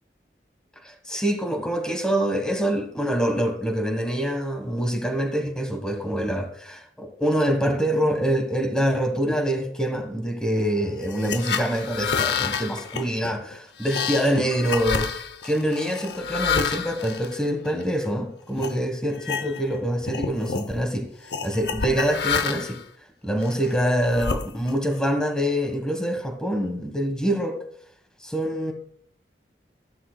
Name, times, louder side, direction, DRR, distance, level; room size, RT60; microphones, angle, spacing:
voice 1, 0.8-15.1 15.4-19.1 19.4-21.1 21.4-22.8 23.2-27.6 28.2-28.7, equal, 5° left, 1.3 m, -25 dB
sound 1, 11.0-18.1 18.6-18.8 19.1-19.8 20.0-20.7 21.3-22.8 23.4-24.9, left 6 dB, 75° left, 0.7 m, -29 dB
13.0 x 12.5 x 2.2 m
head